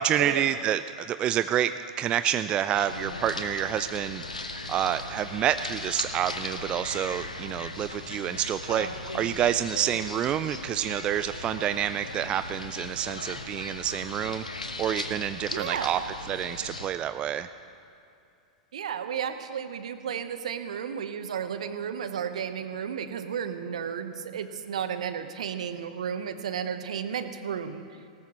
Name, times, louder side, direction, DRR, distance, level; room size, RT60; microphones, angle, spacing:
voice 1, 0.0-4.2 4.7-14.4 14.8-16.0 16.3-17.5, right 10 dB, 25° right, 11 dB, 0.3 m, -28 dB
sound 1, 2.7-16.9, left 2 dB, 80° left, 1.0 m, -38 dB
voice 2, 15.5-16.0 18.7-27.8, right 8 dB, 60° right, 10 dB, 0.9 m, -33 dB
19.5 x 18.0 x 3.0 m, 2.5 s
figure-of-eight pair, 95°, 4 cm